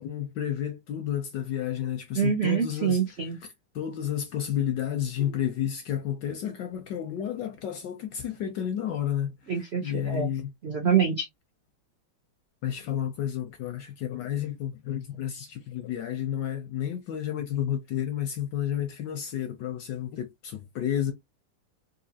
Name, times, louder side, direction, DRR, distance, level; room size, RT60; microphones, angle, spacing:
voice 1, 0.0-3.0 3.7-9.4 9.8-10.5 12.6-21.1, left 10 dB, 70° left, 1.1 m, -31 dB
voice 2, 2.1-3.4 9.5-10.3 10.6-11.3, right 7 dB, 65° right, 0.6 m, -25 dB
4.2 x 2.6 x 2.7 m
omnidirectional pair, 2.4 m